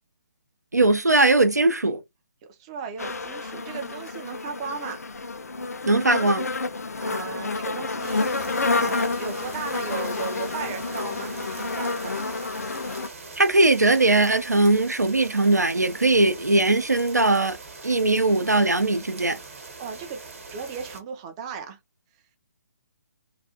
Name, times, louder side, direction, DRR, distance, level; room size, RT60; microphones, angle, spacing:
voice 1, 0.7-2.0 5.9-6.5 13.4-17.6 17.8-19.4, right 2 dB, 85° right, 0.5 m, -20 dB
voice 2, 2.5-5.0 7.0-12.3 19.8-20.2 20.5-21.8, right 6 dB, 20° right, 0.4 m, -36 dB
sound 1, 3.0-13.1, left 3 dB, 65° left, 0.5 m, -29 dB
sound 2, 8.0-21.0, right 3 dB, 50° right, 1.0 m, -42 dB
2.4 x 2.3 x 2.7 m
figure-of-eight pair, 135°, 9 cm